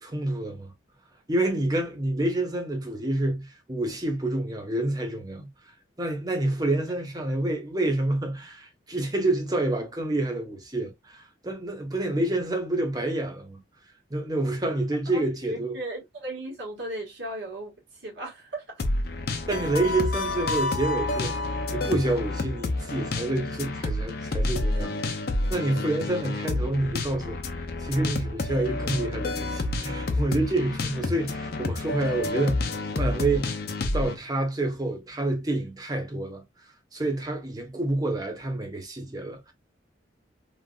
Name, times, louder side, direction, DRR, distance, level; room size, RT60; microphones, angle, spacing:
voice 1, 0.0-0.7 1.3-13.6 14.1-15.8 19.5-25.2 25.5-32.6 32.9-33.5 33.9-36.5 36.9-39.5, right 2 dB, 20° right, 0.7 m, -28 dB
voice 2, 15.1-18.6, right 1 dB, 70° right, 1.6 m, -36 dB
sound 1, 18.8-34.2, left 2 dB, 50° left, 0.5 m, -29 dB
3.2 x 2.5 x 2.3 m
head